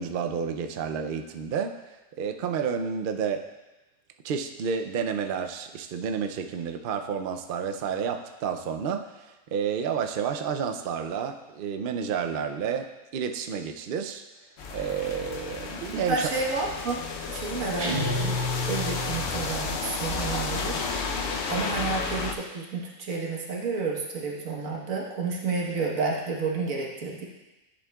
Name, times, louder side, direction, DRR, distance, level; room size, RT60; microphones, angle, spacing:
voice 1, 0.0-3.5 4.2-14.2 14.7-16.3, right 7 dB, 60° right, 6 dB, 0.5 m, -30 dB
sound 1, 14.6-22.3, left 4 dB, 60° left, 0.9 m, -32 dB
voice 2, 15.9-18.3 18.7-21.0 21.5-27.2, right 4 dB, 80° right, -2 dB, 1.6 m, -30 dB
sound 2, 17.8-19.5, left 1 dB, 30° right, 0.9 m, -30 dB
11.0 x 7.1 x 2.3 m, 1.1 s
omnidirectional pair, 1.4 m